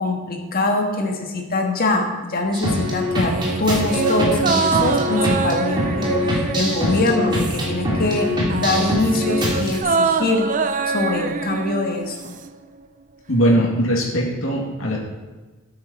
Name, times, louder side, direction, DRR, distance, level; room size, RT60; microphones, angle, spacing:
voice 1, 0.0-3.3 3.6-10.5 10.9-12.3, left 2 dB, 50° left, 3 dB, 1.6 m, -23 dB
sound 1, 2.5-9.8, left 1 dB, 25° right, 2.6 m, -23 dB
sound 2, 3.1-7.9 8.2-12.5 12.8-12.9, right 5 dB, 40° right, 0.5 m, -25 dB
voice 2, 13.3-15.0, equal, 75° left, -3 dB, 2.4 m, -20 dB
12.0 x 8.6 x 4.4 m, 1.2 s
head